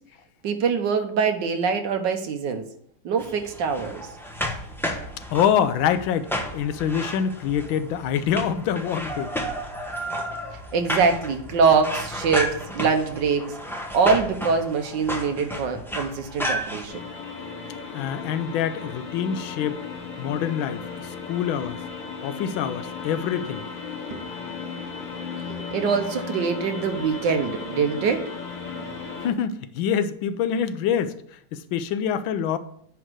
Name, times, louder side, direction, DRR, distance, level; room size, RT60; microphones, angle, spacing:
voice 1, 0.4-2.6 3.0-4.0 10.7-13.5 13.9-17.0 24.1-24.2 25.5-28.4, right 5 dB, 70° right, 6 dB, 1.5 m, -24 dB
sound 1, 3.2-16.9, equal, 5° left, 0.4 m, -32 dB
voice 2, 5.3-9.3 17.9-19.8 20.2-21.8 22.2-23.6 29.2-32.6, left 8 dB, 85° left, 12 dB, 1.4 m, -25 dB
sound 2, 16.9-29.3, left 5 dB, 45° left, 1.7 m, -35 dB
10.0 x 3.6 x 6.2 m, 0.65 s
omnidirectional pair, 2.1 m